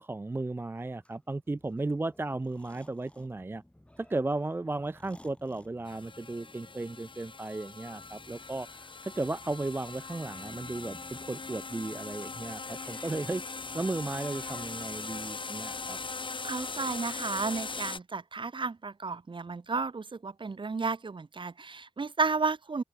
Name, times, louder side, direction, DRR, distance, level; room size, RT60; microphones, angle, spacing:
voice 1, 0.0-3.6 4.0-8.7 9.0-13.4 13.7-16.0, right 2 dB, 20° right, 0.3 m, -35 dB
sound 1, 0.8-15.2, left 1 dB, 10° left, 2.9 m, -58 dB
sound 2, 5.9-18.0, left 4 dB, 45° left, 1.2 m, -40 dB
voice 2, 16.4-22.8, right 4 dB, 45° right, 0.8 m, -32 dB
wide cardioid pair, 75°, 12 cm